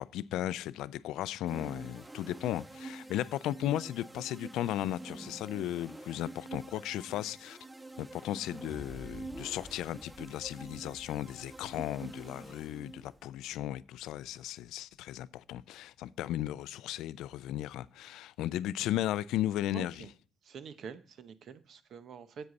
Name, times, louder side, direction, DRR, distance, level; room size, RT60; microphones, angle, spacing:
voice 1, 0.0-7.6 8.0-20.1, left 13 dB, 90° left, 0.3 m, -35 dB
sound 1, 1.4-13.2, right 2 dB, 15° right, 0.5 m, -47 dB
sound 2, 8.7-15.1, left 1 dB, 5° left, 3.2 m, -54 dB
voice 2, 19.7-20.1 20.4-22.5, right 6 dB, 65° right, 0.8 m, -46 dB
8.1 x 7.8 x 4.0 m
cardioid pair, 90°, 0 cm